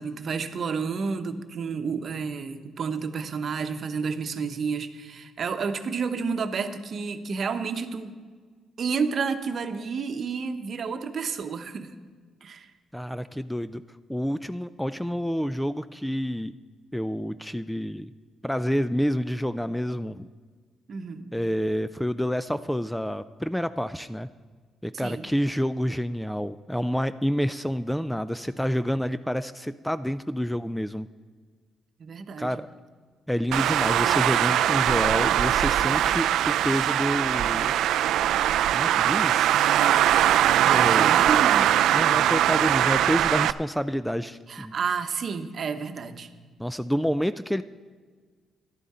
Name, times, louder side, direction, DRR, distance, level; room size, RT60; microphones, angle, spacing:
voice 1, 0.0-8.1 8.8-11.9 12.4-12.7 20.9-21.3 24.9-25.3 32.0-32.6 40.7-41.7 44.5-46.3, right 5 dB, 50° right, 8 dB, 0.9 m, -30 dB
voice 2, 12.9-13.8 14.1-16.5 16.9-18.1 18.4-20.3 21.3-24.3 24.8-31.1 32.4-32.7 33.3-37.9 38.7-39.5 40.6-41.1 41.9-44.7 46.6-47.6, equal, 5° left, 13 dB, 0.3 m, -28 dB
Traffic noise roadway noise, 33.5-43.5, right 11 dB, 80° right, 0.3 m, -21 dB
13.5 x 11.5 x 4.3 m, 1.5 s
cardioid pair, 90°, 0 cm